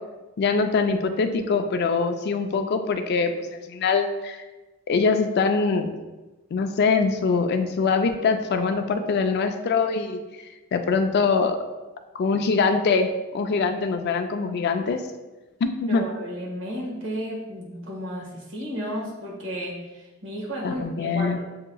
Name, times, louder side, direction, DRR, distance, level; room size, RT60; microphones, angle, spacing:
voice 1, 0.4-4.4 4.9-5.9 6.5-10.2 10.7-11.6 12.1-15.0 15.6-16.0 20.6-21.4, left 4 dB, 55° left, 7 dB, 0.3 m, -23 dB
voice 2, 15.9-21.4, equal, 65° right, -4 dB, 1.5 m, -33 dB
7.2 x 2.8 x 2.3 m, 1.2 s
head